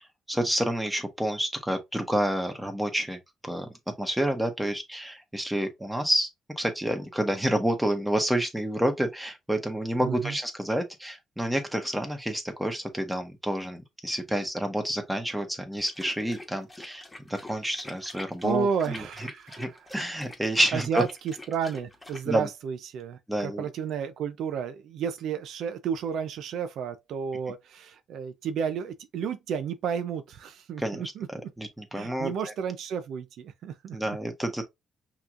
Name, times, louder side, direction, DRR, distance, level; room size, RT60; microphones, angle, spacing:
voice 1, 0.0-3.7 4.0-6.3 6.6-17.0 17.3-19.0 19.6-21.0 22.3-22.5 23.3-23.6 30.8-31.0 31.3-32.3 33.9-34.6, right 1 dB, 5° right, 1.3 m, -29 dB
voice 2, 10.0-10.4 18.4-19.9 20.7-31.5 31.9-34.2, right 7 dB, 75° right, 0.5 m, -32 dB
sound 1, 15.8-22.2, left 1 dB, 15° left, 1.5 m, -45 dB
5.7 x 3.0 x 2.5 m
cardioid pair, 90°, 0 cm